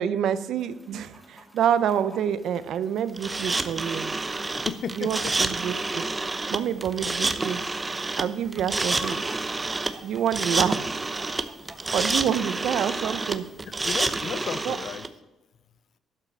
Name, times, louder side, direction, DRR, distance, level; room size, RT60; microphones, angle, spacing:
voice 1, 0.0-4.1 5.0-6.0 6.5-7.6 8.2-9.1 10.0-11.0 11.9-13.4 14.6-14.8, right 9 dB, 75° right, 14 dB, 0.7 m, -27 dB
Chicken rooster, 0.6-13.5, right 1 dB, 5° right, 2.6 m, -49 dB
sound 1, 3.2-15.1, right 3 dB, 25° right, 0.8 m, -28 dB
voice 2, 4.5-5.4 13.8-15.1, left 7 dB, 65° left, 15 dB, 0.6 m, -34 dB
11.5 x 5.8 x 7.0 m, 1.1 s
cardioid pair, 90°, 0 cm